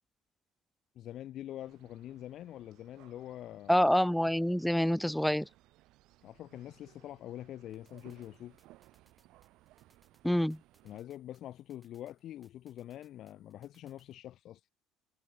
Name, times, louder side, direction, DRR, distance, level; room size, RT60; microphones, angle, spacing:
voice 1, 0.9-3.9 6.2-8.6 10.8-14.6, left 12 dB, 55° left, 0.9 m, -45 dB
sound 1, 1.6-11.0, right 17 dB, 70° right, 1.7 m, -63 dB
voice 2, 3.7-5.5 10.2-10.6, equal, ahead, 0.3 m, -27 dB
sound 2, 7.7-14.2, right 3 dB, 20° right, 7.4 m, -73 dB
supercardioid pair, 95°, 0 cm